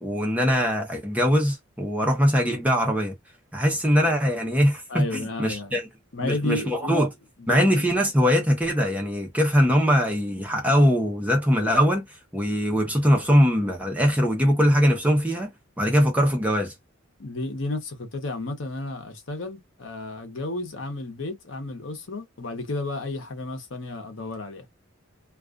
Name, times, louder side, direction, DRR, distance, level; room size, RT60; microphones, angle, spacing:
voice 1, 0.0-3.1 3.5-5.9 6.2-7.1 7.5-15.5 15.8-16.7, equal, 5° right, 0.6 m, -22 dB
voice 2, 4.9-5.8 6.1-7.0 7.5-7.8 17.2-24.7, left 2 dB, 60° left, 0.8 m, -32 dB
2.3 x 2.3 x 2.4 m
head